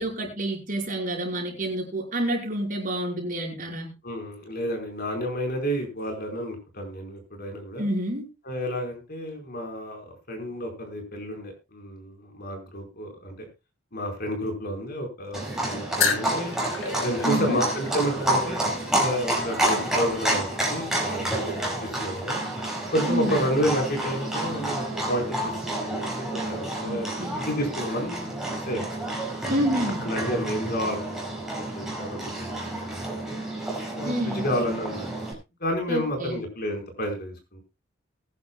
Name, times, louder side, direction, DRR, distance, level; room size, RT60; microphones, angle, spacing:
voice 1, 0.0-3.9 7.8-8.2 17.2-17.6 23.1-23.4 26.8-27.4 29.5-30.1 34.0-34.5 35.9-36.4, right 1 dB, 45° right, 0 dB, 5.1 m, -28 dB
voice 2, 4.0-7.8 8.4-13.3 13.9-16.5 17.0-18.6 18.9-21.5 21.8-22.4 22.9-28.4 28.7-28.9 30.0-31.4 31.7-33.4 33.9-35.1 35.6-37.6, equal, 50° left, 3 dB, 4.7 m, -30 dB
Livestock farm animals working animals, 15.3-35.3, right 1 dB, 5° right, 5.3 m, -29 dB
sound 1, 16.0-20.4, left 5 dB, 75° left, 3.2 m, -32 dB
21.0 x 10.5 x 2.3 m, 0.27 s
head